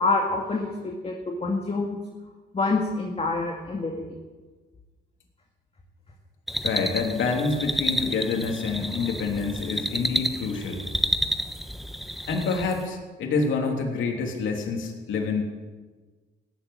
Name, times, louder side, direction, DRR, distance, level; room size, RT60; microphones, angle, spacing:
voice 1, 0.0-2.0 2.5-4.0, left 3 dB, 30° left, 1 dB, 2.2 m, -26 dB
sound 1, 6.5-12.8, equal, ahead, 1.1 m, -30 dB
voice 2, 6.6-10.9 12.3-15.4, left 4 dB, 75° left, 1 dB, 3.1 m, -27 dB
17.0 x 8.1 x 10.0 m, 1.3 s
cardioid pair, 90°, 20 cm